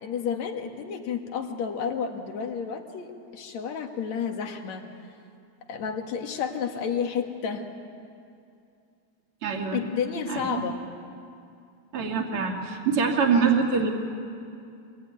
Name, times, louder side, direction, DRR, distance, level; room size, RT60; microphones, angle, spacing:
voice 1, 0.0-4.8 5.7-7.7 9.7-10.8, left 7 dB, 65° left, 4 dB, 2.9 m, -31 dB
voice 2, 9.4-9.8 10.3-10.6 11.9-13.9, right 5 dB, 50° right, 1 dB, 3.1 m, -24 dB
25.5 x 21.0 x 9.5 m, 2.5 s
omnidirectional pair, 3.4 m